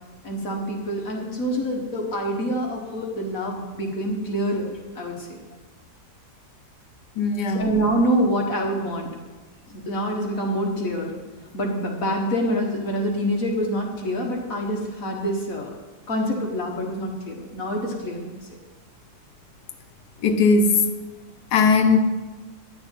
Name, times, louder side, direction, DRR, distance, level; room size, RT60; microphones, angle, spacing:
voice 1, 0.2-5.4 7.5-9.2 9.7-11.2 11.5-15.7 16.1-18.4, equal, 60° left, 1.9 m, -26 dB
voice 2, 7.2-7.7 20.2-20.8 21.5-22.0, left 4 dB, 85° left, 1.5 m, -18 dB
11.5 x 6.9 x 9.1 m
omnidirectional pair, 1.7 m